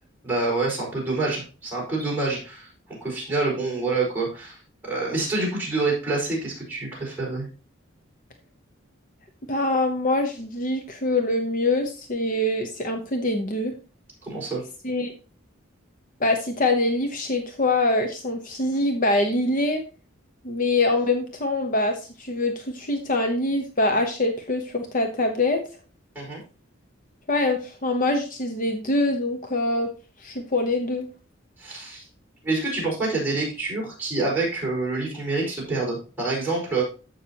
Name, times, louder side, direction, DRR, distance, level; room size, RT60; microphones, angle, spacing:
voice 1, 0.2-4.6 4.8-7.5 14.2-14.6 26.1-26.4 31.6-32.0 32.4-36.8, right 3 dB, 10° right, -5 dB, 5.0 m, -27 dB
voice 2, 9.5-13.7 14.8-15.1 16.2-19.8 20.4-25.6 27.3-29.9 30.2-31.1, left 2 dB, 40° left, 5 dB, 0.9 m, -24 dB
14.0 x 5.7 x 2.9 m, 0.35 s
head